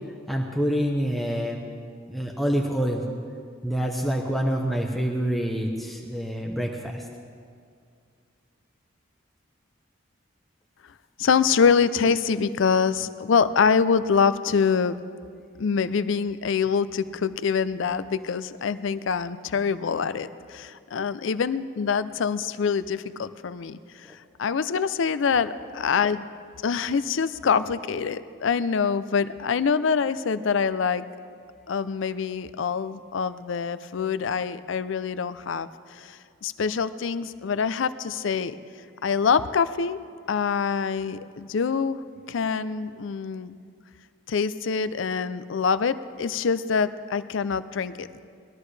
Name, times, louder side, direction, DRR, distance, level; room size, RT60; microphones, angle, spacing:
voice 1, 0.3-1.6 2.1-3.0 3.6-7.1 24.0-24.1, equal, ahead, -1 dB, 0.7 m, -26 dB
voice 2, 11.2-14.9 15.6-26.3 26.6-31.0 31.7-38.5 39.0-40.0 40.3-42.0 42.3-43.6 44.3-48.1, left 6 dB, 70° left, 14 dB, 0.4 m, -25 dB
20.5 x 13.0 x 3.3 m, 2.2 s
head